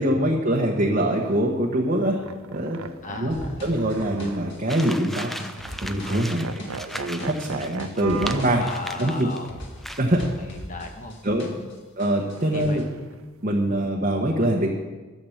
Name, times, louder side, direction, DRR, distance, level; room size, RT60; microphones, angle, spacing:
voice 1, 0.0-2.2 2.5-5.3 5.8-8.6 9.0-9.3 10.0-10.2 11.2-11.5 12.0-12.8 13.4-14.7, right 1 dB, 35° right, -1 dB, 1.1 m, -24 dB
sound 1, 1.1-1.4 2.0-4.9 5.2-5.3 5.6-5.8 6.1-8.5 8.9-9.1 12.3-13.2, right 5 dB, 70° right, 0.6 m, -37 dB
voice 2, 3.0-3.6 6.2-6.8 8.4-9.6 10.5-11.2 11.4-11.7 12.5-12.8, left 2 dB, 35° left, 4 dB, 1.3 m, -37 dB
sound 2, 3.3-11.7 12.0-12.8, equal, 55° left, 2.0 m, -40 dB
sound 3, 4.7-9.5 9.8-10.3, equal, ahead, 0.4 m, -37 dB
12.0 x 7.9 x 7.2 m, 1.3 s
head